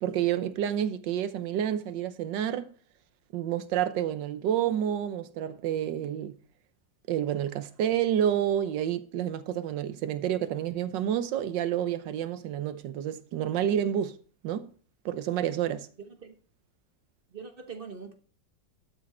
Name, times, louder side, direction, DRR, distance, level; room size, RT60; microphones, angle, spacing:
voice 1, 0.0-2.7 3.3-6.3 7.1-14.2 14.4-14.7 15.0-15.9, right 10 dB, 85° right, 1.5 m, -29 dB
voice 2, 16.0-16.3 17.3-18.1, right 5 dB, 35° right, 1.2 m, -42 dB
12.0 x 6.3 x 4.3 m
omnidirectional pair, 1.9 m